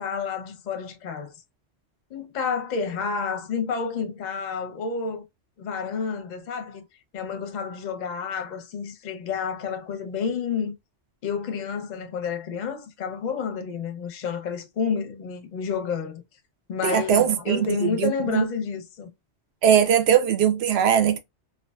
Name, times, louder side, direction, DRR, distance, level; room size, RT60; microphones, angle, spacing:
voice 1, 0.0-1.3 2.1-5.2 5.6-6.8 7.1-10.7 11.2-16.2 16.7-19.1, left 6 dB, 50° left, 0.6 m, -30 dB
voice 2, 16.8-18.4 19.6-21.2, right 9 dB, 65° right, 0.8 m, -20 dB
2.5 x 2.4 x 2.2 m
omnidirectional pair, 1.2 m